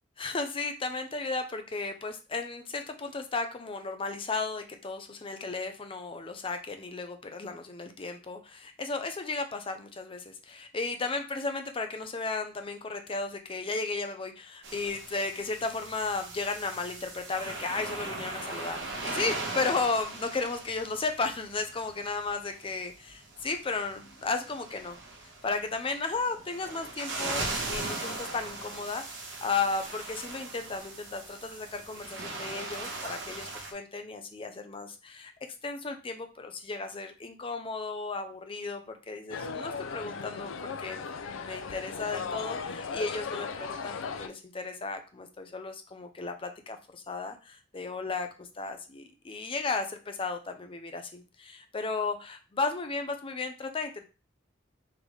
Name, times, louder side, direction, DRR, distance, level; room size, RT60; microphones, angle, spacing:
voice 1, 0.2-25.0 25.4-29.0 29.4-35.3 35.6-41.0 41.3-54.0, left 3 dB, 30° left, 6 dB, 0.5 m, -34 dB
sound 1, 14.6-33.7, right 2 dB, 65° right, 1.1 m, -39 dB
sound 2, 39.3-44.3, left 5 dB, 80° left, 0.4 m, -37 dB
3.8 x 3.4 x 3.2 m, 0.32 s
head